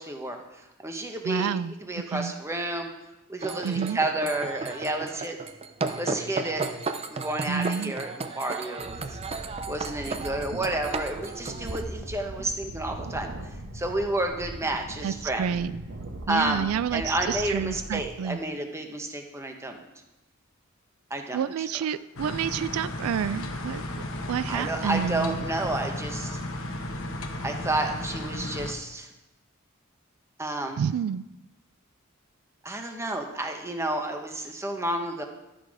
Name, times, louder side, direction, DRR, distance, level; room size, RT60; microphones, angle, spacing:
voice 1, 0.0-1.6 1.9-2.9 3.3-5.4 5.9-6.6 7.1-9.2 9.7-13.3 13.7-15.6 16.3-19.8 21.1-21.7 24.5-26.4 27.4-29.1 30.4-30.8 32.6-35.2, right 1 dB, 15° right, 4 dB, 1.0 m, -30 dB
voice 2, 1.2-1.8 2.1-2.3 3.6-4.0 7.5-7.9 15.0-15.7 16.3-18.4 21.3-25.4 30.8-31.3, right 7 dB, 85° right, 15 dB, 0.3 m, -29 dB
sound 1, 3.4-11.8, right 4 dB, 30° right, 0.5 m, -34 dB
sound 2, 8.8-18.1, right 1 dB, 60° right, 1.3 m, -40 dB
sound 3, 22.2-28.7, left 1 dB, 70° left, 1.1 m, -34 dB
12.0 x 6.2 x 4.9 m, 0.97 s
head